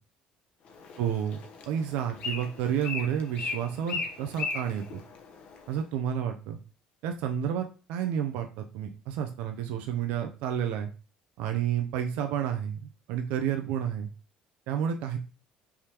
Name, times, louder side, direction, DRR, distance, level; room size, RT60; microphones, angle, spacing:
Bird, 0.7-5.8, left 4 dB, 50° left, 0.9 m, -38 dB
voice 1, 1.0-1.4 1.7-5.0 5.7-6.6 7.0-10.9 11.4-14.1 14.7-15.2, right 9 dB, 80° right, 5 dB, 0.5 m, -30 dB
4.8 x 3.5 x 2.9 m, 0.35 s
cardioid pair, 130°, 2 cm